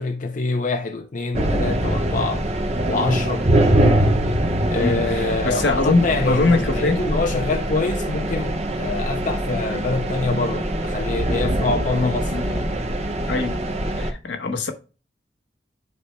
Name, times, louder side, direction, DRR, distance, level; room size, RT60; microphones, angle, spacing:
voice 1, 0.0-2.5 2.9-3.5 4.6-12.7, left 3 dB, 45° left, 0.6 m, -25 dB
sound 1, 1.3-14.1, right 1 dB, 35° right, 1.0 m, -23 dB
voice 2, 4.8-7.0 11.9-12.4 13.3-13.7 14.0-14.7, left 3 dB, 75° left, 1.2 m, -23 dB
11.0 x 4.4 x 2.2 m
head